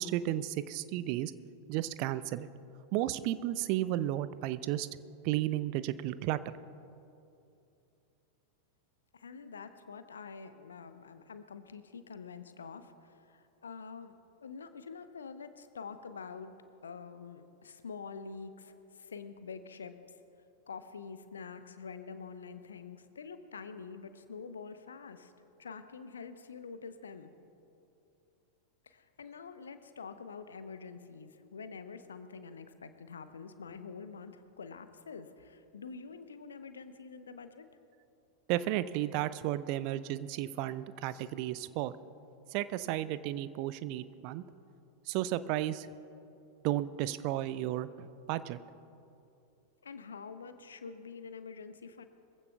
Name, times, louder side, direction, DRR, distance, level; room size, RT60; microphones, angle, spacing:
voice 1, 0.0-1.3 1.7-2.5 2.9-5.0 5.2-6.4 38.5-41.9 42.5-44.4 45.1-45.9 46.6-48.6, right 14 dB, 45° right, 15 dB, 0.5 m, -33 dB
voice 2, 9.1-16.5 16.8-19.9 20.7-25.3 25.6-27.3 28.8-37.7 49.8-52.0, left 5 dB, 70° left, 10 dB, 0.8 m, -46 dB
22.5 x 15.5 x 2.4 m, 2.7 s
figure-of-eight pair, 90°, 0 cm